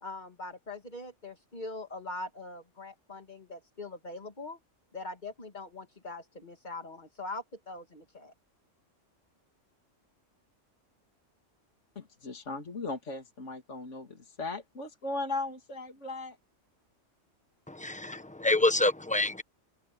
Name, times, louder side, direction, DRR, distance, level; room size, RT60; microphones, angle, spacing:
voice 1, 0.0-4.6 4.9-8.3, left 2 dB, 35° left, 2.3 m, -42 dB
voice 2, 12.0-16.4, left 3 dB, 70° left, 2.6 m, -37 dB
voice 3, 17.7-19.4, left 2 dB, 5° left, 1.0 m, -27 dB
open air
omnidirectional pair, 1.3 m